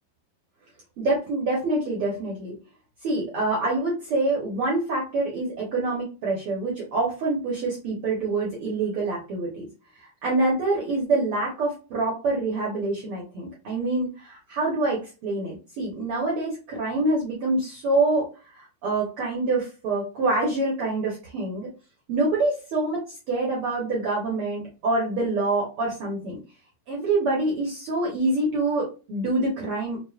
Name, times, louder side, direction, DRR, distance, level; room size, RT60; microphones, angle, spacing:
voice 1, 1.0-2.5 3.0-9.7 10.0-18.3 18.5-21.7 22.1-26.4 26.9-30.0, right 2 dB, 75° right, -4 dB, 1.2 m, -26 dB
6.2 x 2.5 x 2.4 m, 0.33 s
omnidirectional pair, 3.9 m